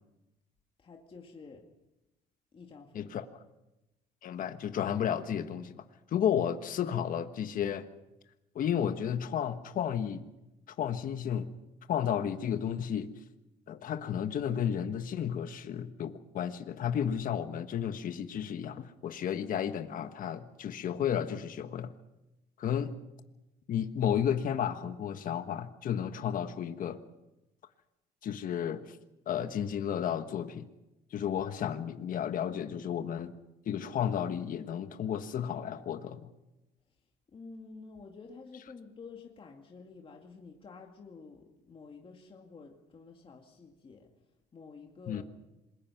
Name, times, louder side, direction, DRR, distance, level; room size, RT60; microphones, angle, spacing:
voice 1, 0.8-1.6 2.5-3.1 37.3-44.1 44.5-45.2, left 4 dB, 30° left, 1 dB, 2.3 m, -50 dB
voice 2, 2.9-3.3 4.2-5.8 6.1-7.9 8.5-10.2 10.7-11.5 11.9-13.1 13.7-21.9 22.6-22.9 23.7-27.0 28.2-29.0 29.3-30.7 31.1-33.3 33.6-36.3 45.1-45.2, left 9 dB, 55° left, 8 dB, 1.3 m, -32 dB
27.0 x 21.5 x 5.9 m, 0.98 s
cardioid pair, 110°, 17 cm